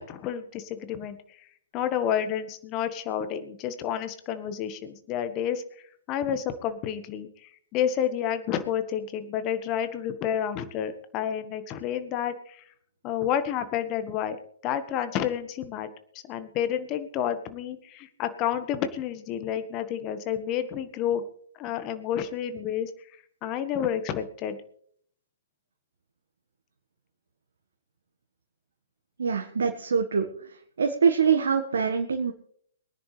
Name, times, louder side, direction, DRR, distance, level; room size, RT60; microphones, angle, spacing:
voice 1, 0.1-1.2 1.7-5.6 6.1-12.6 13.0-14.4 14.6-15.9 16.2-21.2 21.6-22.9 23.4-24.6, left 9 dB, 30° left, 10 dB, 1.5 m, -30 dB
voice 2, 29.2-30.3 30.8-32.3, right 6 dB, 65° right, 4 dB, 1.6 m, -24 dB
23.0 x 10.5 x 3.4 m, 0.63 s
figure-of-eight pair, 125°, 0 cm